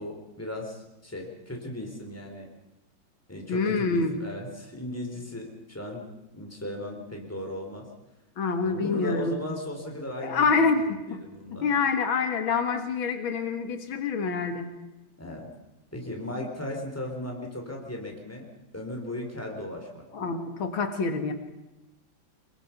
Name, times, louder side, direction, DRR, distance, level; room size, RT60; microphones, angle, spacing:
voice 1, 0.0-2.5 3.3-6.1 6.3-7.9 8.6-10.7 11.1-11.7 15.2-15.5 15.9-18.5 18.7-20.3, left 1 dB, 5° left, 1 dB, 3.8 m, -36 dB
voice 2, 3.5-4.1 8.4-9.4 10.2-11.2 11.6-14.7 20.1-21.3, left 4 dB, 85° left, 7 dB, 2.5 m, -26 dB
23.5 x 21.5 x 5.9 m, 0.98 s
omnidirectional pair, 2.1 m